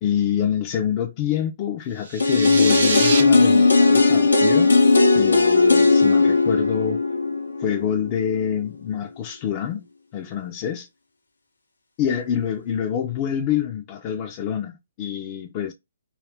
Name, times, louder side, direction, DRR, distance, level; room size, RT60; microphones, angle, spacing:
voice 1, 0.0-4.8 5.1-7.1 7.6-9.8 10.1-10.9 12.0-15.7, left 9 dB, 35° left, 0.4 m, -26 dB
sound 1, 2.0-3.2, right 4 dB, 60° right, 0.9 m, -26 dB
sound 2, 2.2-8.1 8.4-8.5, left 3 dB, 85° left, 0.6 m, -17 dB
2.3 x 2.2 x 3.4 m
hypercardioid pair, 140°, 0 cm